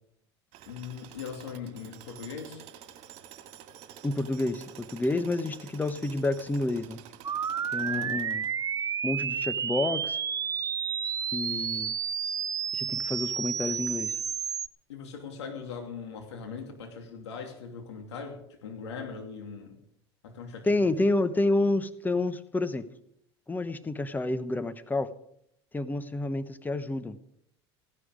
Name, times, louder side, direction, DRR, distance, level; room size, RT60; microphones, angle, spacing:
Tools, 0.5-8.8, right 10 dB, 55° right, 2.4 m, -49 dB
voice 1, 0.7-2.6 7.8-8.4 11.5-11.7 14.9-19.8 20.2-20.7, left 6 dB, 85° left, 3 dB, 2.8 m, -40 dB
voice 2, 4.0-7.0 7.7-8.5 9.0-10.2 11.3-12.0 12.7-14.2 20.6-22.9 23.5-25.1 25.7-27.2, left 2 dB, 10° left, 13 dB, 1.1 m, -29 dB
sound 1, 7.2-14.7, right 7 dB, 25° right, 0.5 m, -31 dB
16.5 x 11.5 x 5.0 m, 0.73 s
hypercardioid pair, 85°, 14 cm